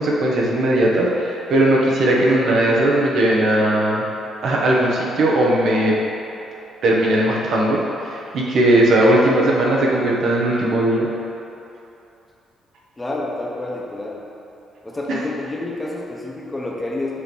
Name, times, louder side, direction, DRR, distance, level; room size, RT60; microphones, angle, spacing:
voice 1, 0.0-4.0 4.4-6.0 6.8-11.1 15.1-15.2, right 1 dB, 70° right, -3 dB, 1.0 m, -18 dB
voice 2, 13.0-14.2 14.8-17.2, left 2 dB, 20° left, -2 dB, 0.9 m, -29 dB
6.6 x 3.1 x 5.4 m, 2.9 s
cardioid pair, 90°, 0 cm